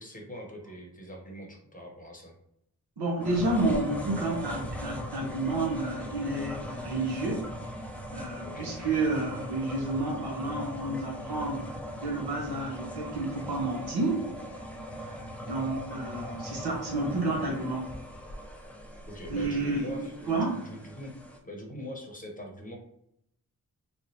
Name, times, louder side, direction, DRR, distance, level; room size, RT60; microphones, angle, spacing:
voice 1, 0.0-2.3 8.4-8.7 19.0-21.2 21.4-22.8, left 1 dB, 20° left, 1 dB, 0.9 m, -42 dB
voice 2, 3.0-7.4 8.1-11.7 12.0-14.2 14.9-17.9 19.3-20.6, right 2 dB, 85° right, -1 dB, 1.1 m, -30 dB
sound 1, 3.2-21.4, equal, 5° left, 0.5 m, -40 dB
3.5 x 3.1 x 2.7 m, 0.77 s
wide cardioid pair, 95°, 38 cm